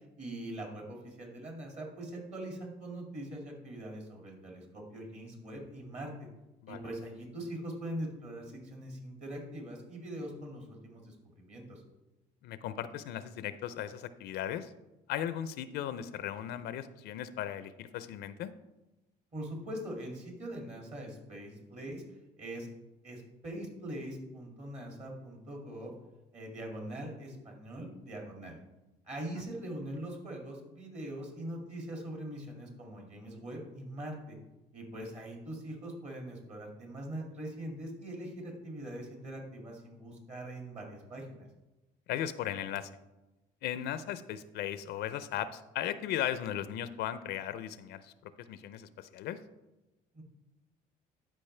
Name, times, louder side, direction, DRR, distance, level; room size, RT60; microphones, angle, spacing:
voice 1, 0.2-6.1 6.7-11.8 19.3-22.0 22.4-22.7 23.0-25.9 26.3-28.6 29.1-34.4 34.7-41.4 50.1-50.2, right 1 dB, 40° right, 0 dB, 2.2 m, -42 dB
voice 2, 12.4-14.7 15.1-18.5 42.1-42.9 43.6-48.1 48.5-49.4, left 11 dB, 80° left, 13 dB, 0.5 m, -37 dB
12.0 x 5.1 x 3.3 m, 1.0 s
cardioid pair, 110°, 17 cm